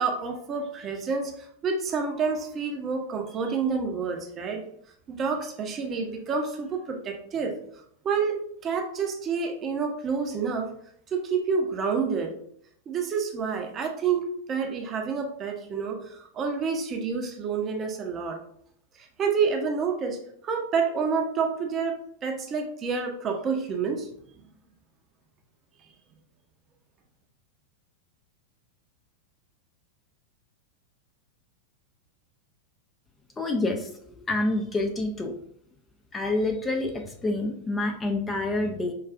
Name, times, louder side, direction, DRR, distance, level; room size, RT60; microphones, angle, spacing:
voice 1, 0.0-4.6 5.1-7.5 8.0-10.7 11.1-12.3 12.9-18.4 19.0-20.2 20.4-24.1, right 5 dB, 30° right, 3 dB, 0.6 m, -28 dB
voice 2, 33.4-33.9 34.3-35.3 36.1-38.9, left 2 dB, 15° left, 3 dB, 0.4 m, -27 dB
4.8 x 2.3 x 2.4 m, 0.66 s
figure-of-eight pair, 90°, 0 cm